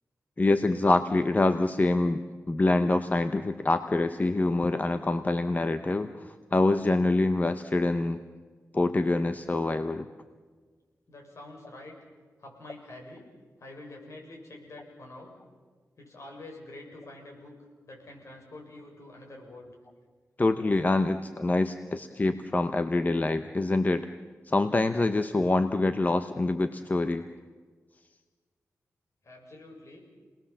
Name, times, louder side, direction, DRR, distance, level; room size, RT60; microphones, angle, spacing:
voice 1, 0.4-2.2 2.5-8.2 8.7-10.1 20.4-24.1 24.5-27.2, left 2 dB, 30° left, 9 dB, 0.9 m, -25 dB
voice 2, 11.1-11.9 12.4-13.2 13.6-15.4 16.0-17.5 17.9-19.8 29.2-30.0, left 2 dB, 60° left, 1 dB, 7.0 m, -46 dB
29.5 x 20.0 x 7.4 m, 1.5 s
wide cardioid pair, 85°, 6 cm